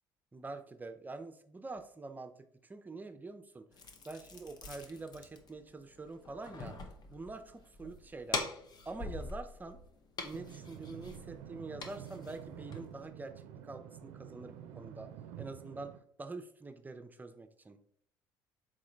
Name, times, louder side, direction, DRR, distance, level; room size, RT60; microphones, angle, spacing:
voice 1, 0.3-2.3 2.6-3.7 4.0-6.8 7.1-8.4 8.8-9.8 10.2-13.3 13.6-15.1 15.4-15.9 16.2-17.8, right 3 dB, 20° right, 8 dB, 0.5 m, -45 dB
sound 1, 3.7-13.0, left 3 dB, 45° left, 0.8 m, -44 dB
sound 2, 10.3-16.0, right 9 dB, 80° right, 0.4 m, -49 dB
3.8 x 3.8 x 3.1 m, 0.65 s
supercardioid pair, 75°, 10 cm